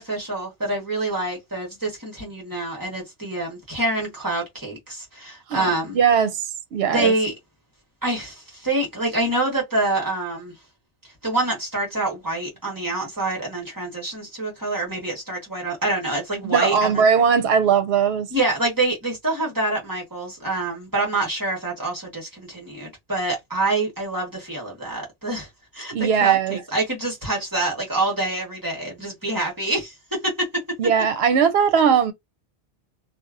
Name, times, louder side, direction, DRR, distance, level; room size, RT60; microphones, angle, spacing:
voice 1, 0.0-6.0 6.9-7.3 8.0-10.5 11.2-17.0 18.3-25.5 25.7-30.6, right 2 dB, 20° right, 1.2 m, -26 dB
voice 2, 5.5-7.1 16.4-18.3 25.9-26.6 30.8-32.1, right 7 dB, 75° right, 0.8 m, -19 dB
2.7 x 2.3 x 2.4 m
omnidirectional pair, 1.1 m